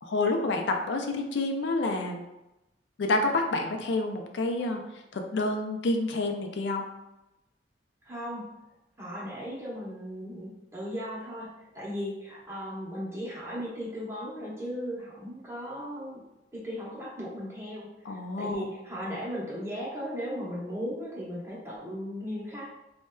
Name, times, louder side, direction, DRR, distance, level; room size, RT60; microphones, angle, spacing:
voice 1, 0.0-2.2 3.0-4.8 5.1-6.9 18.1-18.7, left 2 dB, 75° left, 4 dB, 0.4 m, -28 dB
voice 2, 8.0-8.5 9.0-16.2 16.5-22.7, equal, 15° right, -7 dB, 0.9 m, -37 dB
4.2 x 2.1 x 2.2 m, 0.94 s
head